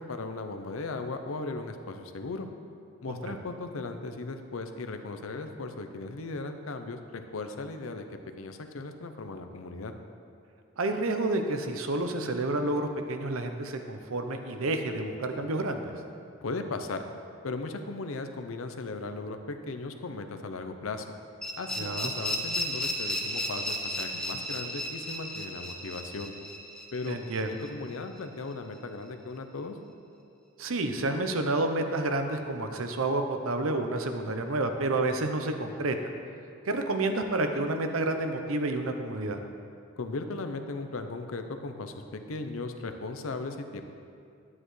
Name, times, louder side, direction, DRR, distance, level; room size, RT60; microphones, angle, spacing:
voice 1, 0.0-2.5 3.0-9.9 16.4-17.0 17.4-21.1 21.6-26.3 26.9-27.2 27.5-29.8 40.0-43.8, left 3 dB, 80° left, 7 dB, 0.6 m, -37 dB
voice 2, 10.8-15.8 21.8-22.1 27.1-27.5 30.6-36.2 36.6-39.4, right 2 dB, 80° right, 6 dB, 0.7 m, -29 dB
sound 1, 21.4-28.2, left 1 dB, 5° left, 0.7 m, -34 dB
10.0 x 9.5 x 3.2 m, 2.4 s
head